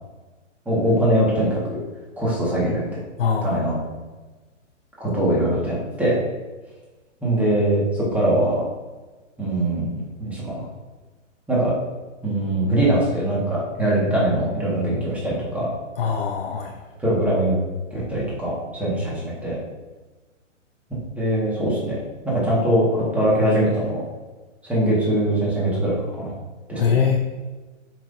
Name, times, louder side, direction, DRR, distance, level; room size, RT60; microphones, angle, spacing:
voice 1, 0.6-1.8 2.2-2.8 3.4-3.8 5.0-6.2 7.2-8.6 9.4-10.5 11.5-11.7 12.2-15.7 17.0-17.6 17.9-19.6 21.2-22.0 22.2-24.0 24.6-26.3 26.7-26.9, right 1 dB, 5° right, -6 dB, 1.6 m, -22 dB
voice 2, 3.2-3.6 16.0-16.7 26.8-27.2, left 6 dB, 50° left, 2 dB, 0.7 m, -22 dB
7.1 x 5.8 x 2.6 m, 1.2 s
hypercardioid pair, 155°, 38 cm